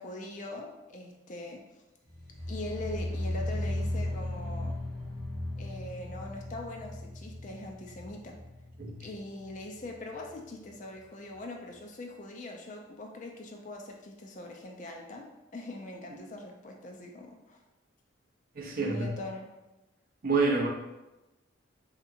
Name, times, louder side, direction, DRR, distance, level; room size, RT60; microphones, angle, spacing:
voice 1, 0.0-1.6 2.5-4.8 5.6-8.3 9.0-15.3 15.5-17.6 18.8-19.5, left 2 dB, 35° left, 2 dB, 0.4 m, -42 dB
sound 1, 2.1-9.2 9.5-9.9 10.3-10.4, left 1 dB, 10° left, 0.8 m, -36 dB
voice 2, 18.6-19.1 20.2-20.7, right 3 dB, 45° right, 0 dB, 0.5 m, -27 dB
3.6 x 2.8 x 2.5 m, 0.99 s
head